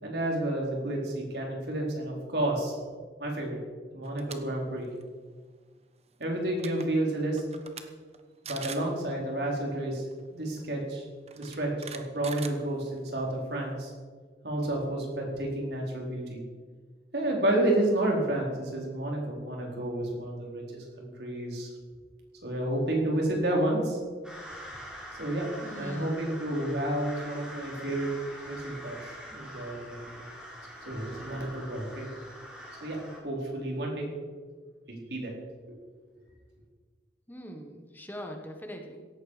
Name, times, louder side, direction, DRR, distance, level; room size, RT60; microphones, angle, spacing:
voice 1, 0.0-2.7 3.2-3.6 3.9-4.9 6.2-7.4 8.4-10.0 10.3-11.0 11.4-13.9 14.4-16.4 17.1-21.7 22.4-24.0 25.2-28.1 28.5-29.0 29.3-30.1 30.9-32.1 32.8-34.1 34.9-35.3 35.7-35.8, right 1 dB, 70° right, -1 dB, 4.6 m, -30 dB
sound 1, 4.0-4.4 4.8-5.0 6.2-6.3 6.5-6.8 7.4-7.8 8.1-8.2 8.4-8.9 10.1-10.2 11.3-13.1, right 7 dB, 35° right, 1.2 m, -42 dB
sound 2, 24.2-33.2, equal, 5° right, 4.3 m, -44 dB
voice 2, 25.6-26.1 37.3-39.0, equal, 10° left, 3 dB, 1.3 m, -42 dB
17.5 x 14.5 x 5.1 m, 1.5 s
head